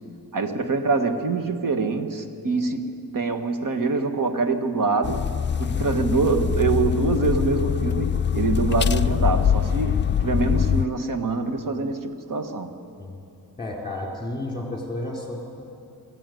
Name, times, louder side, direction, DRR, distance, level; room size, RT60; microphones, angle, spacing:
voice 1, 0.3-5.2 5.6-12.8, right 3 dB, 55° right, 7 dB, 1.8 m, -25 dB
sound 1, 5.0-10.9, left 8 dB, 30° left, 0.4 m, -23 dB
voice 2, 5.7-6.1 13.0-13.1 13.6-15.6, left 1 dB, 15° left, 0 dB, 4.2 m, -32 dB
23.5 x 14.5 x 9.4 m, 2.8 s
wide cardioid pair, 115°, 38 cm